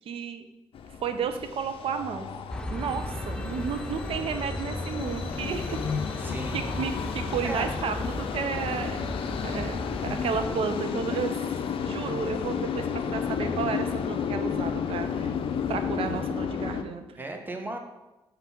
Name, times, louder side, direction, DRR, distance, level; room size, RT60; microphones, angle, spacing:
voice 1, 0.1-0.5 1.0-2.3 2.7-5.8 6.5-9.1 9.4-11.4 11.8-15.3 15.7-17.0, right 6 dB, 75° right, 8 dB, 0.7 m, -32 dB
sound 1, 0.7-16.8, left 7 dB, 70° left, 0.5 m, -32 dB
sound 2, 2.5-10.6, left 1 dB, 10° left, 0.3 m, -36 dB
voice 2, 6.2-6.8 7.4-7.8 17.2-17.8, right 1 dB, 20° right, 4 dB, 1.1 m, -35 dB
5.8 x 3.8 x 5.9 m, 1.0 s
cardioid pair, 75°, 10 cm